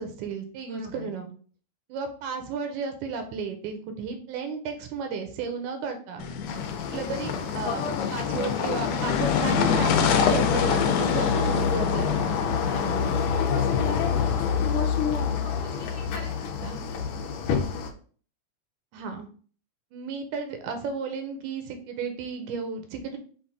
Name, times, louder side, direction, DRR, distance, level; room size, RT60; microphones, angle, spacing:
voice 1, 0.0-1.3 1.9-6.3 6.9-12.1 18.9-19.3 19.9-23.2, right 5 dB, 85° right, 6 dB, 2.2 m, -33 dB
voice 2, 0.7-1.1 11.1-11.7 12.5-13.2 15.2-16.8, right 4 dB, 55° right, -5 dB, 1.1 m, -42 dB
sound 1, 6.2-13.2, left 7 dB, 90° left, 2.1 m, -27 dB
sound 2, 6.5-17.9, left 6 dB, 75° left, 1.9 m, -27 dB
5.7 x 2.6 x 3.5 m, 0.44 s
omnidirectional pair, 3.5 m